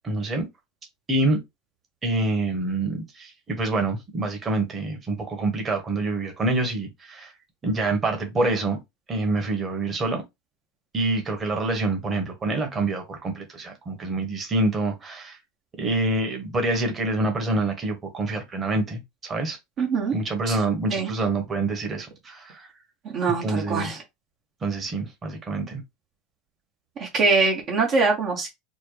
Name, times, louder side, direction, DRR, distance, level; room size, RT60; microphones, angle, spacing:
voice 1, 0.0-0.5 1.1-1.4 2.0-7.3 7.6-8.8 9.1-10.2 10.9-15.4 15.8-19.6 20.1-22.7 23.4-24.0 24.6-25.8, right 2 dB, 25° right, 1.4 m, -26 dB
voice 2, 19.8-20.2 20.5-20.6 20.9-21.1 23.1-24.0 27.0-28.5, right 4 dB, 45° right, 1.2 m, -23 dB
4.3 x 2.3 x 3.3 m
supercardioid pair, 110°, 0 cm